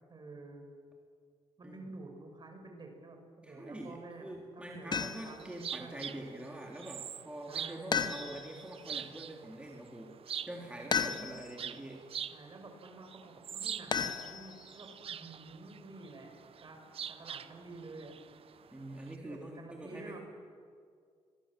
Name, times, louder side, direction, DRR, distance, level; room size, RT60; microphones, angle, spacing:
voice 1, 0.1-0.6 1.6-4.3 4.7-6.0 7.5-8.1 12.3-18.4 19.2-20.2, right 2 dB, 40° right, 4 dB, 6.2 m, -50 dB
voice 2, 3.4-12.0 18.7-20.2, right 1 dB, 10° right, -1 dB, 3.5 m, -45 dB
sound 1, 4.9-5.4 7.9-8.6 10.9-11.6 13.9-14.8, left 6 dB, 40° left, 1.4 m, -34 dB
sound 2, 5.0-19.1, right 8 dB, 55° right, 0.9 m, -45 dB
24.5 x 22.5 x 7.7 m, 2.2 s
cardioid pair, 75°, 11 cm